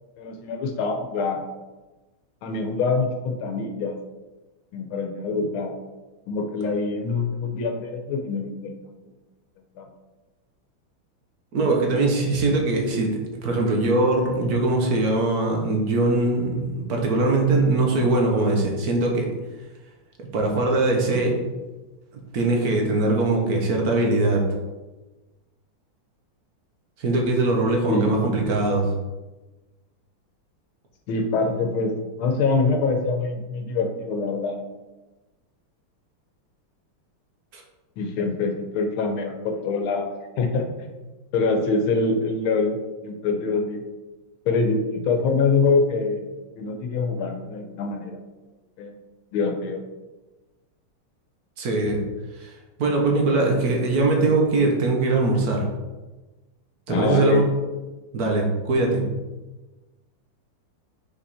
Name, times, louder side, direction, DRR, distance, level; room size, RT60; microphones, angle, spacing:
voice 1, 0.2-1.4 2.4-4.0 4.7-5.8 6.3-9.1 9.8-9.9 27.9-28.2 31.1-34.6 38.0-40.1 40.4-40.9 41.3-42.8 43.0-43.8 44.5-46.3 46.6-48.2 48.8-48.9 49.3-49.8 56.9-57.5, left 4 dB, 75° left, 5 dB, 1.6 m, -24 dB
voice 2, 11.5-19.3 20.2-21.5 22.1-24.5 27.0-28.9 37.5-37.6 51.6-52.0 52.4-52.5 52.8-55.7 56.9-57.4 58.1-59.1, right 2 dB, 50° right, 0 dB, 1.4 m, -22 dB
5.4 x 5.1 x 4.2 m, 1.1 s
omnidirectional pair, 2.4 m